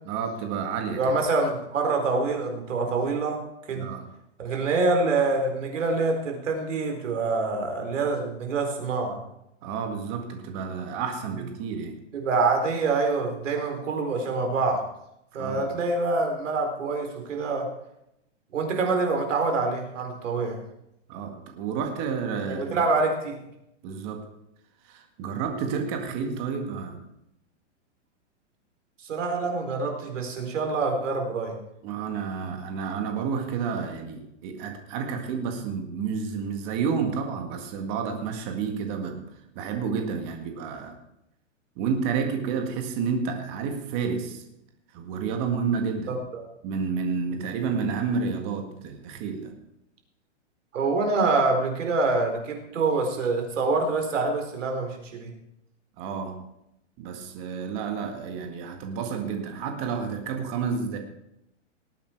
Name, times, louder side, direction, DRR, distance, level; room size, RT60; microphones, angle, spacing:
voice 1, 0.1-1.2 3.8-4.1 9.6-12.0 15.4-15.7 21.1-22.8 23.8-24.3 24.8-27.0 31.8-39.3 39.5-41.0 41.8-44.4 44.9-46.2 46.6-49.5 56.0-56.4 57.0-61.0, right 6 dB, 25° right, 5 dB, 1.8 m, -30 dB
voice 2, 1.0-3.4 3.7-3.9 4.4-9.2 12.1-14.9 15.3-17.7 18.5-20.6 22.5-23.4 29.0-31.6 46.1-46.5 50.7-55.3, right 3 dB, 85° right, 3 dB, 4.4 m, -26 dB
19.5 x 8.9 x 4.7 m, 0.81 s
hypercardioid pair, 170°, 36 cm